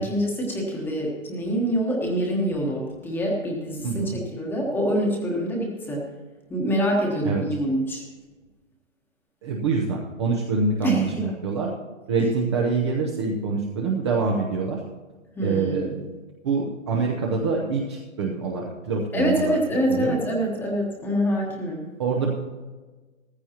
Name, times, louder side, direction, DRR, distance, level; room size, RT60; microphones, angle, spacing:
voice 1, 0.0-6.1 6.5-8.0 10.8-11.3 15.3-16.0 19.1-21.9, equal, 5° left, -1 dB, 1.2 m, -25 dB
voice 2, 3.8-4.2 7.2-7.4 9.4-11.7 12.1-14.8 15.4-16.1 16.4-19.6 19.9-20.2 22.0-22.3, right 4 dB, 20° right, -1 dB, 0.7 m, -25 dB
14.5 x 14.5 x 2.9 m, 1.3 s
hypercardioid pair, 160°, 40 cm